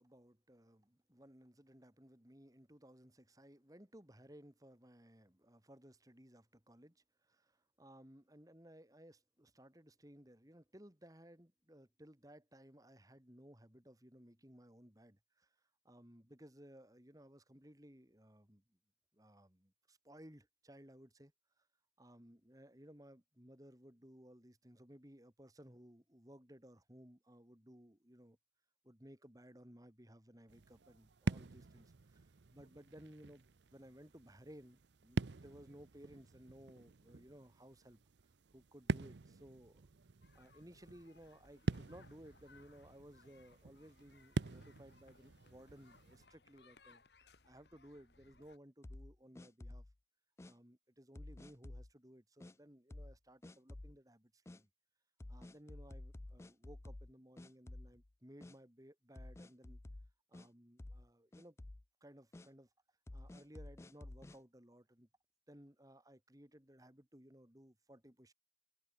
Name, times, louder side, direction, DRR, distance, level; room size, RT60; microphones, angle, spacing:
voice 1, 0.0-15.5 15.8-18.6 19.1-21.3 22.0-28.4 28.8-32.3 32.5-38.0 38.5-39.8 40.3-47.0 47.4-49.8 50.4-54.7 55.3-59.8 60.3-61.6 62.0-62.7 63.1-65.1 65.5-68.3, equal, 20° right, 2.8 m, -59 dB
sound 1, 30.5-46.3, right 3 dB, 80° right, 0.7 m, -45 dB
sound 2, 40.2-48.6, left 4 dB, 70° left, 2.4 m, -67 dB
sound 3, 48.8-49.9 50.4-50.5 51.2-51.9 52.4-52.5 52.9-53.2 53.4-54.0 54.5-54.6 55.2-57.1 57.4-58.1 58.4-58.6 59.2-60.5 60.8-61.1 61.3-61.8 62.3-62.5 63.1-64.4, left 1 dB, 15° left, 0.3 m, -51 dB
head